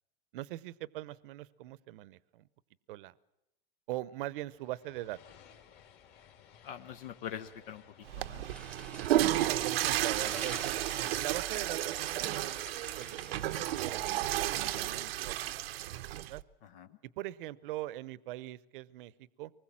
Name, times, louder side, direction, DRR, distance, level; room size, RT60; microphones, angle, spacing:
voice 1, 0.3-2.5 2.9-3.1 3.9-5.2 9.2-13.2 13.4-15.4 16.1-16.4 17.2-19.5, right 16 dB, 60° right, 19 dB, 0.9 m, -41 dB
sound 1, 4.5-11.9, left 8 dB, 35° left, 2.5 m, -59 dB
voice 2, 6.6-8.5 16.6-17.0, left 9 dB, 65° left, 8 dB, 1.3 m, -44 dB
Water / Toilet flush, 8.0-16.4, right 14 dB, 85° right, 0.9 m, -32 dB
sound 2, 8.5-15.0, equal, 5° left, 0.9 m, -49 dB
25.0 x 20.5 x 7.5 m, 0.86 s
supercardioid pair, 165°, 30 cm